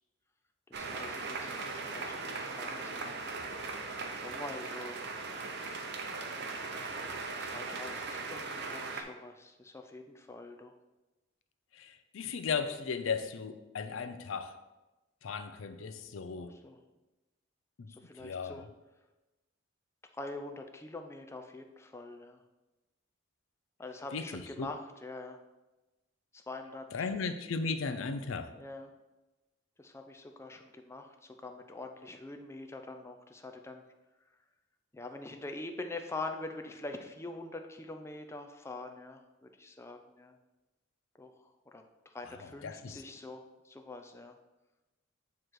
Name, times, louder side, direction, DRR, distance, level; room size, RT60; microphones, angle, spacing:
voice 1, 0.7-3.2 4.1-5.0 6.9-10.7 16.4-16.8 17.9-18.6 20.1-22.4 23.8-25.4 26.3-27.1 28.5-28.9 29.8-33.8 34.9-40.4 41.2-44.4, left 2 dB, 15° left, 5 dB, 0.4 m, -45 dB
sound 1, 0.7-9.0, right 3 dB, 55° right, 0.7 m, -39 dB
voice 2, 11.7-14.5 15.2-16.6 17.8-17.9 18.2-18.6 24.1-24.7 26.9-28.6 42.6-43.0, left 5 dB, 85° left, 10 dB, 0.5 m, -36 dB
8.7 x 3.1 x 4.6 m, 1.1 s
head